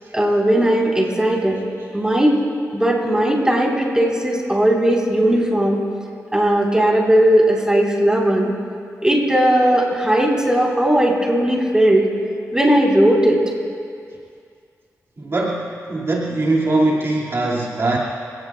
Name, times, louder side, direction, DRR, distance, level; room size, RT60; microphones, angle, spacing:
voice 1, 0.1-1.6 1.9-2.4 2.7-5.8 6.3-8.5 9.0-12.0 12.5-13.4, right 1 dB, 10° right, -3 dB, 4.2 m, -17 dB
voice 2, 15.2-18.0, right 2 dB, 50° right, -5 dB, 2.4 m, -21 dB
28.5 x 18.0 x 2.4 m, 2.3 s
cardioid pair, 70°, 6 cm